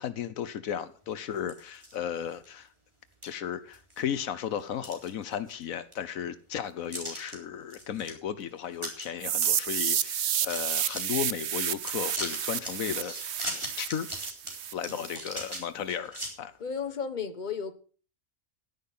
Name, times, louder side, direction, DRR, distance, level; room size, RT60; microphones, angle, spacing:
voice 1, 0.0-2.7 3.2-13.4 13.8-14.1 14.7-16.5, left 9 dB, 80° left, 1.3 m, -35 dB
sound 1, 1.4-2.0 2.4-2.5 3.2-3.3 3.7-4.2 4.6-5.6 5.9-6.0 6.9-7.3 7.7-8.1 8.4-8.5 8.7-9.1 9.3-11.2 11.6-16.3, equal, 20° right, 3.9 m, -39 dB
sound 2, 9.2-15.2, right 10 dB, 60° right, 0.9 m, -30 dB
voice 2, 16.6-17.7, left 6 dB, 35° left, 1.3 m, -34 dB
11.5 x 10.5 x 5.5 m
omnidirectional pair, 1.4 m